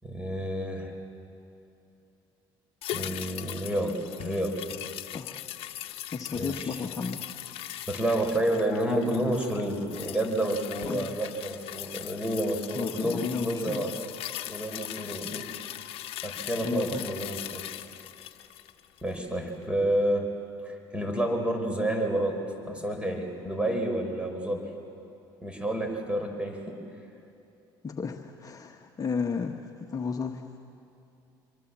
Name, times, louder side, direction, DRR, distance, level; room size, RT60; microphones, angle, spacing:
voice 1, 0.0-0.9 2.9-4.8 6.4-6.8 7.9-13.9 14.5-15.5 16.2-17.6 19.0-20.3 20.6-22.4 22.7-24.7 25.4-26.8, right 1 dB, 10° right, 4 dB, 5.6 m, -29 dB
sound 1, 2.8-19.3 19.6-19.7, left 13 dB, 65° left, 1.0 m, -40 dB
voice 2, 6.1-7.2 10.9-11.2 12.7-14.0 16.6-17.1 27.8-29.5 29.9-30.5, left 5 dB, 35° left, 4 dB, 1.4 m, -33 dB
26.0 x 23.5 x 7.6 m, 2.8 s
hypercardioid pair, 70°, 11 cm